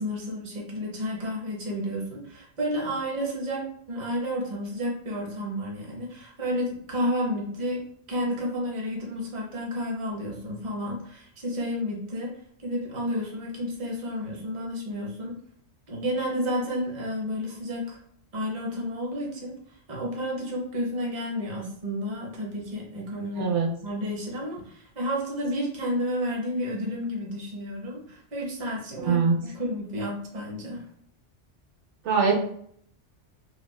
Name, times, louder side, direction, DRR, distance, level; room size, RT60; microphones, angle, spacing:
voice 1, 0.0-7.8 8.1-12.3 12.6-15.3 15.9-18.0 18.3-23.5 23.8-30.8, equal, 45° right, -2 dB, 0.8 m, -31 dB
voice 2, 23.4-23.7 29.0-29.4 32.0-32.3, right 5 dB, 75° right, 0 dB, 0.9 m, -22 dB
3.2 x 2.3 x 2.2 m, 0.64 s
omnidirectional pair, 1.2 m